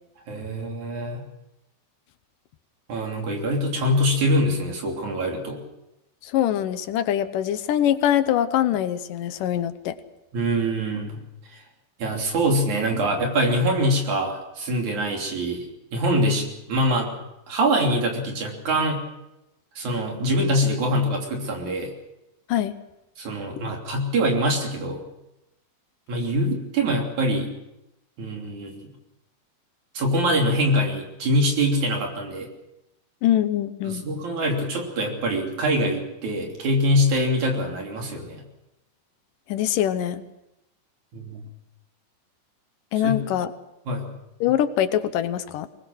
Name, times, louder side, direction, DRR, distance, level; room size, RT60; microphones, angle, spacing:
voice 1, 0.3-1.3 2.9-5.6 10.3-11.2 12.0-15.7 15.9-17.1 17.5-19.0 19.8-21.9 23.2-25.0 26.1-27.5 28.2-28.9 29.9-32.5 33.9-38.4 41.1-41.4 43.0-43.2 43.9-44.1, equal, 60° right, 1 dB, 4.5 m, -24 dB
voice 2, 6.2-10.0 22.5-22.7 33.2-34.0 39.5-40.2 42.9-43.5 44.4-45.7, left 11 dB, 80° left, 12 dB, 2.5 m, -23 dB
23.5 x 19.5 x 6.3 m, 0.90 s
omnidirectional pair, 3.8 m